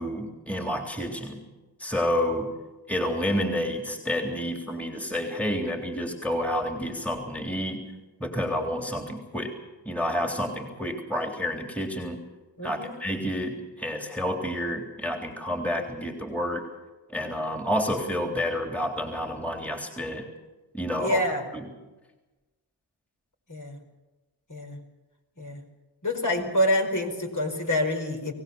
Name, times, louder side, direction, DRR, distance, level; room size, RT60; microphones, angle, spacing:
voice 1, 0.0-1.4 1.8-2.5 2.9-7.8 8.2-9.5 9.8-12.2 12.6-16.6 17.1-20.3 20.7-21.2 21.5-21.7, equal, 5° left, 3 dB, 3.5 m, -29 dB
voice 2, 12.6-13.0 21.0-21.4 23.5-23.8 24.5-24.8 25.4-25.6 26.0-28.3, left 1 dB, 40° left, 3 dB, 4.9 m, -27 dB
24.0 x 18.5 x 7.1 m, 1.1 s
cardioid pair, 50°, 45 cm